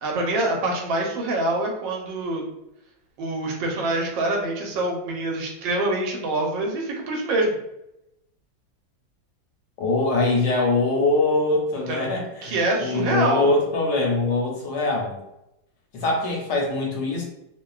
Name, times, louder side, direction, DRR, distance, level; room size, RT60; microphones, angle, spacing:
voice 1, 0.0-2.4 3.2-7.5 11.9-12.1 12.4-13.5, right 2 dB, 75° right, 0 dB, 1.3 m, -25 dB
voice 2, 9.8-15.2 15.9-17.2, left 2 dB, 75° left, -1 dB, 1.1 m, -23 dB
3.1 x 2.1 x 2.3 m, 0.86 s
omnidirectional pair, 2.1 m